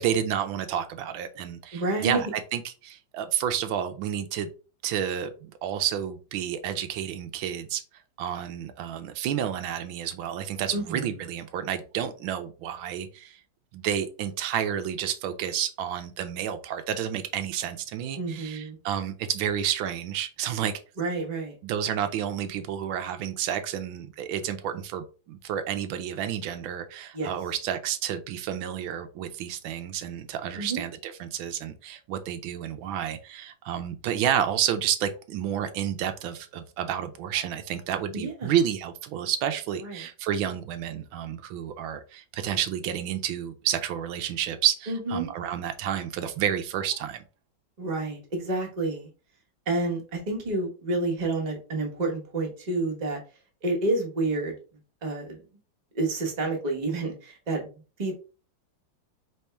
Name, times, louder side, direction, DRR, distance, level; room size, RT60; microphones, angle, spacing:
voice 1, 0.0-2.3 2.5-4.5 4.8-7.8 8.2-13.4 13.7-20.7 21.6-47.2, right 9 dB, 85° right, 9 dB, 1.4 m, -30 dB
voice 2, 1.7-2.2 10.7-11.1 18.2-18.8 21.0-21.5 27.1-27.3 30.6-30.8 38.1-38.5 39.8-40.1 44.9-45.3 47.8-49.1 49.7-53.2 53.6-54.5 55.0-55.4 55.9-58.1, right 2 dB, 25° right, 0 dB, 1.1 m, -29 dB
4.3 x 3.5 x 3.3 m, 0.35 s
omnidirectional pair, 2.1 m